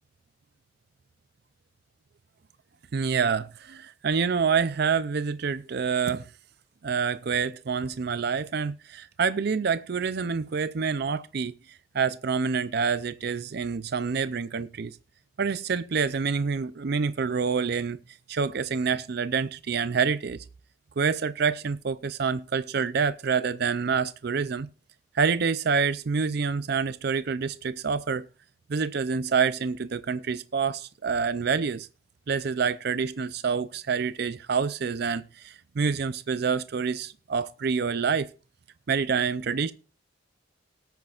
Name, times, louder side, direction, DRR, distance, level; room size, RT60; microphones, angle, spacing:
voice 1, 2.9-6.3 6.8-15.0 15.4-18.0 18.3-20.4 21.0-24.7 25.1-28.3 28.7-31.9 32.3-38.3 38.9-39.7, right 5 dB, 50° right, 0.4 m, -27 dB
19.0 x 9.1 x 2.4 m
head